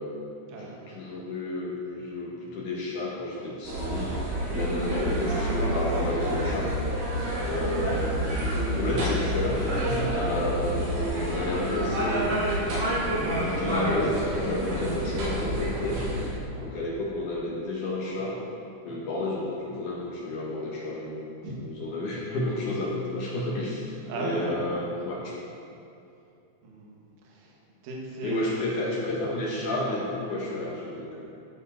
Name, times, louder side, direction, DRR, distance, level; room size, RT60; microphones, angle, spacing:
voice 1, 0.0-4.2 4.5-6.7 7.4-12.5 13.3-16.1 16.6-18.4 18.8-25.4 28.2-31.2, left 1 dB, 65° left, -4 dB, 2.3 m, -31 dB
sound 1, 3.6-16.3, right 1 dB, 85° right, 5.1 m, -28 dB
voice 2, 16.4-16.7 21.4-21.6 24.0-24.7 25.3-25.4 26.6-27.0 27.2-27.5 27.8-28.4, right 2 dB, 60° right, -3 dB, 3.0 m, -36 dB
13.5 x 8.1 x 4.3 m, 2.6 s
omnidirectional pair, 4.9 m